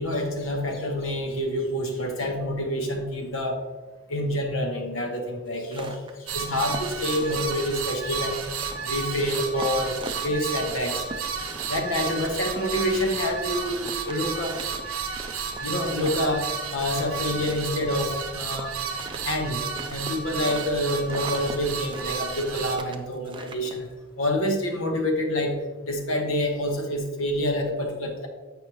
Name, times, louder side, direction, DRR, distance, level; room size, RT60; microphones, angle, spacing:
voice 1, 0.0-3.6 4.1-6.0 6.3-8.3 8.9-10.0 10.2-11.0 11.7-14.6 15.6-18.7 19.2-19.6 19.9-23.9 24.2-25.6 25.8-28.3, left 1 dB, 65° left, 3 dB, 1.0 m, -27 dB
sound 1, 5.5-7.8 8.1-10.7 11.0-13.3 13.6-13.7 13.8-17.2 17.5-20.8 21.0-21.6 21.9-23.9, right 3 dB, 25° right, 0.4 m, -40 dB
sound 2, 6.3-22.8, right 6 dB, 75° right, 0.8 m, -32 dB
8.1 x 5.2 x 3.0 m, 1.3 s
head